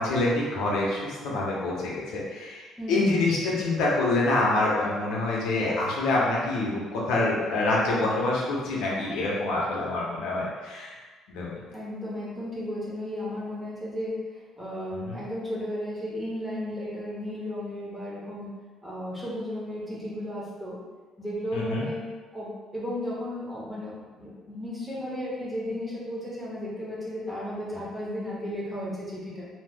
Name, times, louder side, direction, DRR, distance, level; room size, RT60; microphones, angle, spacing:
voice 1, 0.0-2.6 2.9-10.9 11.3-11.5 15.1-15.2 21.5-21.8, left 2 dB, 85° left, -4 dB, 0.8 m, -26 dB
voice 2, 2.8-3.2 11.7-14.2 14.6-18.5 18.8-20.8 21.2-22.0 22.3-29.5, left 1 dB, 10° right, -7 dB, 0.8 m, -34 dB
2.9 x 2.1 x 3.4 m, 1.4 s
cardioid pair, 150°, 0 cm